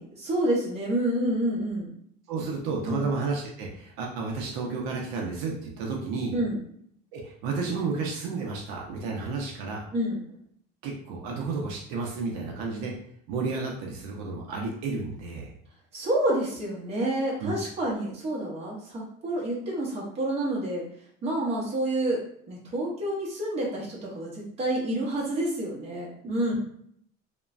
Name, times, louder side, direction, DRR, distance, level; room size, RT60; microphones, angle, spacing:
voice 1, 0.0-1.9 2.9-3.0 6.3-6.6 9.9-10.2 15.9-20.8 21.2-22.2 22.5-26.6, right 1 dB, 30° right, -4 dB, 0.9 m, -28 dB
voice 2, 2.3-6.4 7.1-9.9 10.8-12.9 13.3-15.5 17.4-17.5, right 4 dB, 75° right, 0 dB, 0.6 m, -32 dB
3.0 x 2.2 x 2.4 m, 0.66 s
cardioid pair, 155°, 21 cm